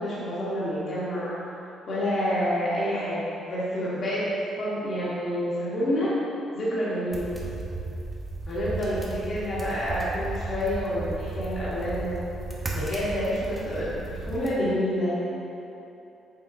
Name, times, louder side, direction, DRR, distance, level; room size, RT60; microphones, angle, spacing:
voice 1, 0.0-1.3 1.9-4.3 4.6-6.2 6.5-7.3 8.5-12.2 12.7-15.2, equal, 55° left, -10 dB, 1.0 m, -28 dB
sound 1, 7.1-14.5, right 3 dB, 20° right, 0.7 m, -35 dB
5.6 x 3.6 x 2.5 m, 2.9 s
cardioid pair, 90°, 0 cm